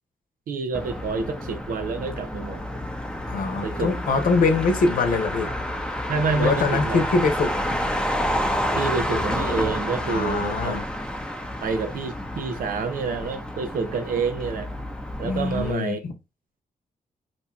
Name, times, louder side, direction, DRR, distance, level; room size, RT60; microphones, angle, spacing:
voice 1, 0.5-2.6 3.6-3.9 6.1-7.0 8.8-10.8 11.6-14.7 15.2-16.0, right 4 dB, 85° right, 0.6 m, -28 dB
Motor vehicle (road), 0.7-15.7, left 1 dB, 5° left, 0.7 m, -29 dB
voice 2, 3.3-5.5 6.4-7.5 10.1-10.8 15.2-16.1, left 4 dB, 80° left, 0.8 m, -23 dB
2.8 x 2.3 x 4.1 m
cardioid pair, 60°, 14 cm